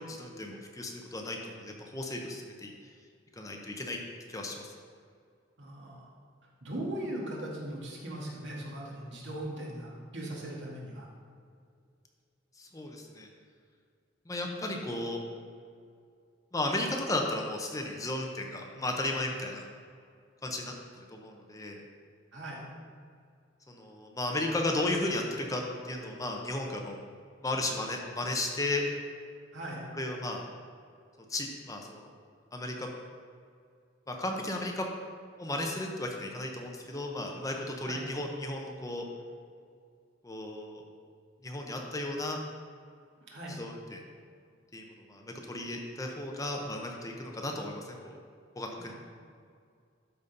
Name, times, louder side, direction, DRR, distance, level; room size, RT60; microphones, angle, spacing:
voice 1, 0.0-2.7 3.3-4.0 4.3-4.7 12.6-13.3 14.3-15.2 16.5-19.6 20.4-21.8 23.7-27.0 27.4-28.8 29.9-30.4 31.3-32.1 32.5-32.9 34.1-34.9 35.4-39.1 40.2-40.8 41.4-42.4 43.5-44.0 44.7-48.2 48.5-48.9, left 2 dB, 20° left, 1 dB, 0.8 m, -34 dB
voice 2, 5.6-6.1 6.6-11.1 22.3-22.7 29.5-29.8 37.8-38.1 43.3-43.6 48.8-48.9, right 1 dB, 70° right, -3 dB, 2.1 m, -39 dB
12.5 x 4.2 x 5.3 m, 2.2 s
head